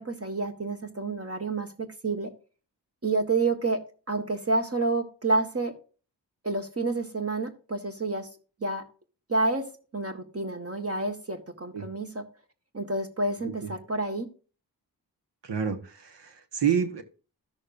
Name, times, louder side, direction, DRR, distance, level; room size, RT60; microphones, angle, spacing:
voice 1, 0.0-2.3 3.0-3.8 4.1-5.7 6.4-8.3 8.6-8.8 9.3-9.6 9.9-12.2 12.7-14.3, right 3 dB, 35° right, 5 dB, 1.5 m, -29 dB
voice 2, 15.4-17.0, right 7 dB, 75° right, 9 dB, 1.4 m, -29 dB
13.5 x 6.5 x 2.5 m, 0.36 s
cardioid pair, 40°, 42 cm